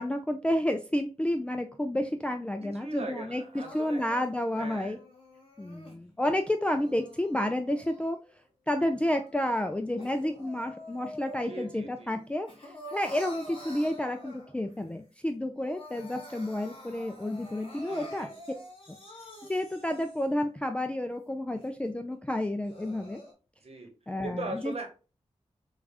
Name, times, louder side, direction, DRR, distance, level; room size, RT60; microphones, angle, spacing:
voice 1, 0.0-5.0 5.6-8.2 8.7-12.5 12.9-18.3 18.9-19.0 19.5-23.2 24.1-24.7, left 1 dB, 10° left, 5 dB, 0.3 m, -30 dB
voice 2, 2.6-4.0 4.6-4.9 11.4-12.2 17.9-18.4 23.6-23.9 24.2-24.9, right 2 dB, 60° right, 3 dB, 1.0 m, -40 dB
Crying sobbing, 3.5-6.0 6.6-8.4 8.8-11.8 12.1-14.7 15.2-15.3 15.5-20.4 20.9-21.0 21.6-21.7 22.4-23.3, equal, 50° left, 1.3 m, -47 dB
4.7 x 2.4 x 2.3 m, 0.33 s
cardioid pair, 60°, 12 cm